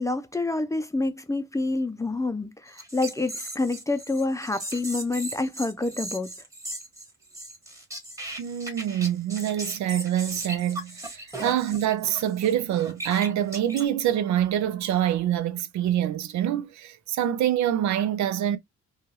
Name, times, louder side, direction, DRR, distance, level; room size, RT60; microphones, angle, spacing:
voice 1, 0.0-2.5 2.9-6.3, left 2 dB, 10° left, 0.5 m, -27 dB
sound 1, 2.7-13.9, right 1 dB, 10° right, 1.2 m, -38 dB
voice 2, 8.4-18.6, right 11 dB, 70° right, 0.5 m, -26 dB
2.7 x 2.3 x 3.1 m
cardioid pair, 90°, 30 cm